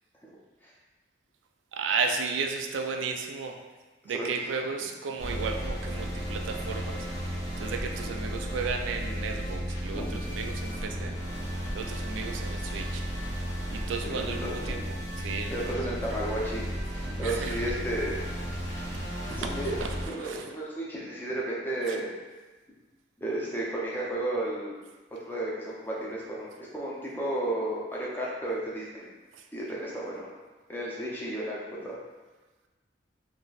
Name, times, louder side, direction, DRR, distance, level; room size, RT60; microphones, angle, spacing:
voice 1, 1.7-3.6 4.1-7.1 7.6-11.2 11.7-13.0 13.7-14.8 15.2-15.7 17.2-17.7 19.3-19.4 19.8-19.9 20.2-20.5 21.9-22.0, right 5 dB, 85° right, 5 dB, 0.3 m, -34 dB
voice 2, 4.1-4.7 9.9-10.2 14.0-14.7 15.5-18.1 19.4-22.1 23.2-24.8 25.2-29.1 29.5-30.3 30.7-32.0, right 1 dB, 10° left, -5 dB, 0.5 m, -33 dB
sound 1, 5.2-20.1, equal, 85° left, 0.9 m, -34 dB
2.4 x 2.1 x 3.9 m, 1.2 s
head